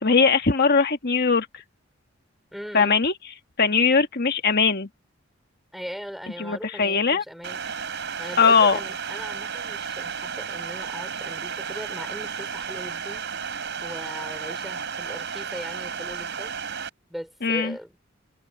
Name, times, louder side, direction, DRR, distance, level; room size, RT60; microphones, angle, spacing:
voice 1, 0.0-1.5 2.7-3.1 3.6-4.9 6.4-7.2 8.4-8.8 17.4-17.7, left 5 dB, 55° left, 1.7 m, -20 dB
voice 2, 2.5-3.0 5.7-7.6 8.2-13.3 13.8-16.6 17.1-18.0, equal, ahead, 5.0 m, -39 dB
sound 1, 7.4-16.9, right 6 dB, 60° right, 5.1 m, -33 dB
head